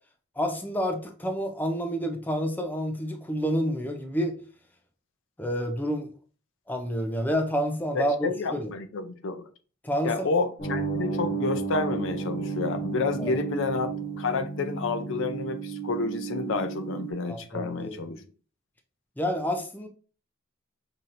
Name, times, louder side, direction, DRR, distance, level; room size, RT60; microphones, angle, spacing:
voice 1, 0.4-4.4 5.4-6.1 6.7-8.7 9.8-10.3 13.2-13.4 17.3-18.2 19.2-19.9, equal, 10° left, 0.4 m, -29 dB
voice 2, 7.9-9.5 10.0-18.2, left 4 dB, 60° left, 0.5 m, -30 dB
sound 1, 10.6-17.1, right 5 dB, 45° left, 1.1 m, -32 dB
5.7 x 2.7 x 2.5 m
head